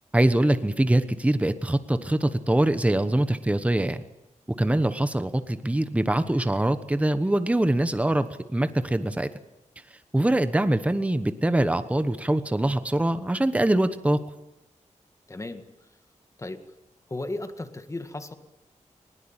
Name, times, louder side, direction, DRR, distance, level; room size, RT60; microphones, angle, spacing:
voice 1, 0.1-4.0 4.6-8.3 8.5-9.3 10.1-14.2, right 1 dB, 10° right, 11 dB, 1.1 m, -23 dB
voice 2, 15.3-15.6 16.4-16.6 17.1-18.3, left 2 dB, 25° left, 9 dB, 1.9 m, -35 dB
20.5 x 20.5 x 9.0 m, 0.92 s
wide cardioid pair, 135°, 13 cm